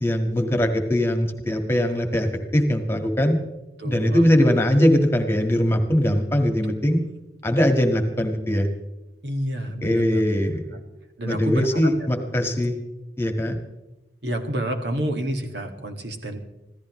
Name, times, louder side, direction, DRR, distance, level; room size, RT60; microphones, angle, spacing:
voice 1, 0.0-3.4 3.8-7.0 7.4-8.7 9.8-10.8 11.3-12.8 13.2-13.6, equal, 15° left, 4 dB, 1.6 m, -21 dB
voice 2, 3.8-4.3 6.6-7.1 9.2-10.2 11.2-11.8 14.2-16.4, right 1 dB, 75° right, 4 dB, 2.0 m, -29 dB
25.5 x 15.5 x 3.2 m, 1.0 s
head